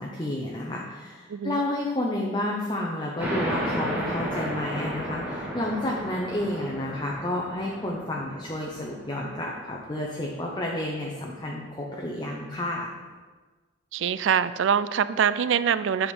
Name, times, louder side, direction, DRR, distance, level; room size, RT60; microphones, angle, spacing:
voice 1, 0.0-12.9, left 1 dB, 25° left, -2 dB, 0.7 m, -31 dB
voice 2, 1.3-1.6 13.9-16.1, right 7 dB, 65° right, 14 dB, 0.3 m, -24 dB
sound 1, 3.2-10.4, equal, 10° right, 2.2 m, -33 dB
8.0 x 5.0 x 5.4 m, 1.4 s
head